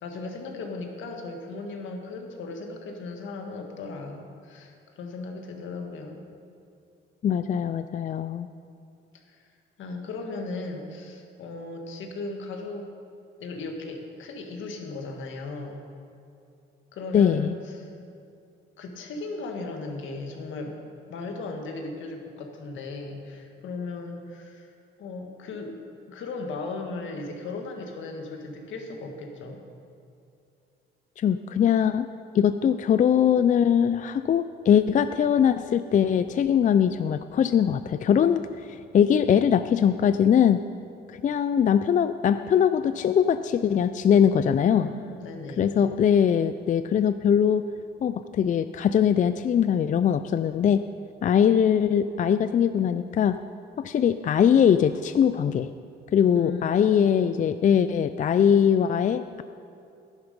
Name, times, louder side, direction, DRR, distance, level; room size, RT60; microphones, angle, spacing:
voice 1, 0.0-6.2 9.1-9.4 9.8-12.9 13.4-15.8 16.9-17.9 18.8-20.8 21.1-24.7 25.0-25.8 26.1-29.6 44.5-45.8 56.3-57.5, left 3 dB, 75° left, 3 dB, 1.7 m, -37 dB
voice 2, 7.2-8.5 17.1-17.5 31.2-32.1 32.3-38.4 38.9-40.7 41.1-44.9 45.6-47.6 48.0-50.8 51.2-53.4 53.8-55.7 56.1-59.4, left 8 dB, 40° left, 11 dB, 0.4 m, -21 dB
11.0 x 10.5 x 5.2 m, 2.5 s
cardioid pair, 90°, 20 cm